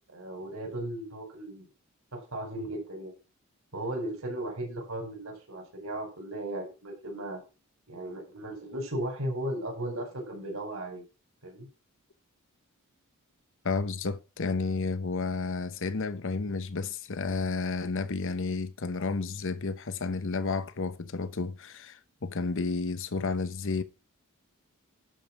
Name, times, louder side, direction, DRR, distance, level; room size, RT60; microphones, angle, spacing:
voice 1, 0.1-1.7 2.1-3.1 3.7-7.4 7.9-11.0 11.4-11.7, right 1 dB, 70° right, 5.1 m, -36 dB
voice 2, 13.6-23.8, left 4 dB, 60° left, 0.9 m, -31 dB
11.5 x 5.4 x 5.8 m
head